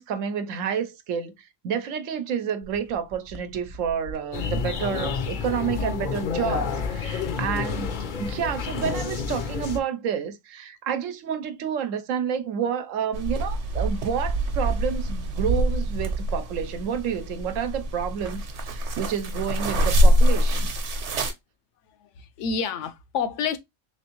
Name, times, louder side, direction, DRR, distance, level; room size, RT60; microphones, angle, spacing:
voice 1, 0.0-20.7, right 7 dB, 85° right, 1.0 m, -29 dB
sound 1, 2.6-9.7, right 2 dB, 35° right, 0.5 m, -45 dB
sound 2, 4.3-9.8, left 5 dB, 55° left, 0.6 m, -29 dB
sound 3, 13.1-21.3, equal, 65° right, 1.0 m, -24 dB
voice 2, 22.0-23.6, left 6 dB, 75° left, 0.9 m, -29 dB
3.4 x 3.1 x 2.9 m
omnidirectional pair, 1.3 m